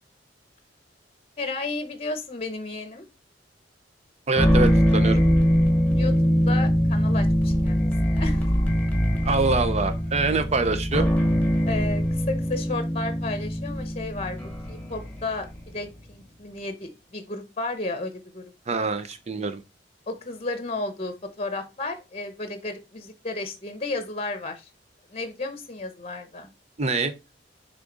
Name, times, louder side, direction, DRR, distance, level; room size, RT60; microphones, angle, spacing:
voice 1, 1.4-3.0 5.9-6.1 6.5-8.5 11.7-15.5 15.7-18.4 20.1-24.7 25.1-26.5, left 2 dB, 35° left, 0.9 m, -33 dB
sound 1, 4.3-15.7, equal, 10° left, 1.3 m, -22 dB
voice 2, 4.3-5.2 9.2-11.1 18.7-19.6 26.8-27.1, right 3 dB, 35° right, 0.7 m, -25 dB
6.5 x 3.7 x 3.9 m
head